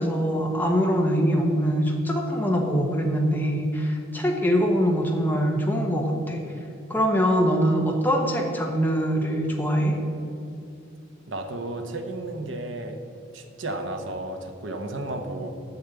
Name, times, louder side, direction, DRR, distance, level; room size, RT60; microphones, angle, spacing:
voice 1, 0.0-6.4 6.9-10.0, equal, 10° left, 0 dB, 1.0 m, -23 dB
voice 2, 11.3-13.0 13.3-15.5, right 2 dB, 65° right, 5 dB, 0.9 m, -33 dB
7.2 x 6.9 x 8.2 m, 2.7 s
head